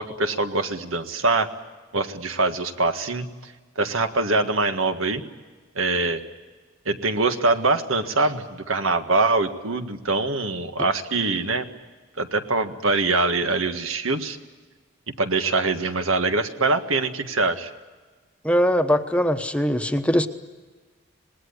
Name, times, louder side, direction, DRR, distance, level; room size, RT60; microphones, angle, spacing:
voice 1, 0.0-1.5 1.9-5.2 5.8-6.2 6.9-11.7 12.2-14.4 15.2-17.7, right 3 dB, 85° right, 7 dB, 1.7 m, -23 dB
voice 2, 18.4-20.3, equal, 5° left, 7 dB, 1.0 m, -21 dB
26.5 x 20.0 x 9.9 m, 1.3 s
head